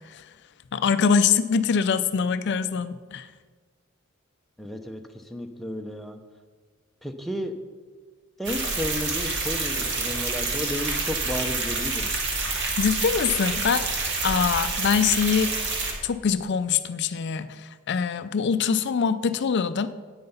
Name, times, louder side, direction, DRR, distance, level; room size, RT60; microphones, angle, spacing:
voice 1, 0.7-3.3 12.8-13.9 14.2-15.5 16.0-19.9, left 6 dB, 55° left, 13 dB, 0.4 m, -24 dB
voice 2, 4.6-5.0 5.3-6.2 7.0-7.5 8.4-12.1, left 1 dB, ahead, 4 dB, 0.7 m, -32 dB
sound 1, 8.4-15.9, right 3 dB, 55° right, 1.8 m, -28 dB
9.3 x 8.8 x 5.6 m, 1.5 s
head